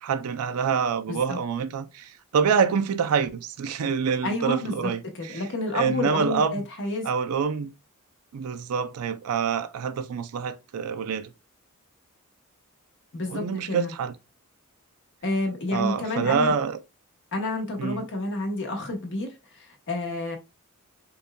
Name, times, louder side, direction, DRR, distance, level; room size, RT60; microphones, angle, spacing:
voice 1, 0.0-5.4 5.7-6.6 7.0-7.7 8.3-11.3 13.3-14.1 15.7-16.8 17.8-18.1, right 6 dB, 80° right, 0.4 m, -26 dB
voice 2, 1.1-1.4 4.2-7.1 13.1-13.9 15.2-16.5 17.3-19.3 19.6-20.4, left 2 dB, 55° left, 1.1 m, -30 dB
5.3 x 2.3 x 2.2 m
head